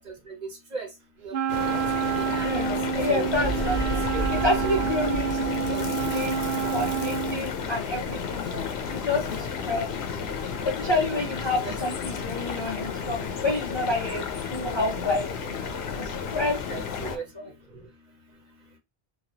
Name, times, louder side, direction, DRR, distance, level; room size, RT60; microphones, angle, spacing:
Wind instrument woodwind instrument, 1.3-7.5, right 8 dB, 75° right, 0.9 m, -28 dB
sound 1, 1.5-17.2, left 6 dB, 80° left, 0.9 m, -32 dB
voice 1, 1.7-2.5 3.1-3.3 4.1-4.2 4.7-4.8 5.7-5.8 11.6-11.7 16.7-17.2, right 4 dB, 45° right, 0.9 m, -36 dB
voice 2, 2.4-8.6 8.9-9.9 10.6-15.3 15.6-16.6 17.0-17.5, left 2 dB, 40° left, 0.4 m, -29 dB
sound 2, 3.3-7.1, right 3 dB, 60° left, 1.4 m, -33 dB
3.2 x 2.3 x 2.7 m
omnidirectional pair, 1.0 m